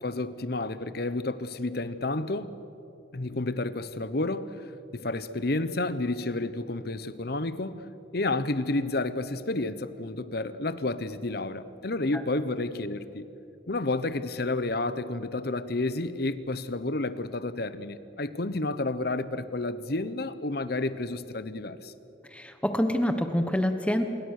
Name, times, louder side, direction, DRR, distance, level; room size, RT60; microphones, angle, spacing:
voice 1, 0.0-2.5 3.1-7.8 8.1-13.2 13.7-21.9, left 2 dB, 55° left, 13 dB, 1.0 m, -30 dB
voice 2, 22.3-24.0, equal, 5° left, 7 dB, 1.0 m, -26 dB
26.5 x 22.5 x 6.6 m, 2.8 s
head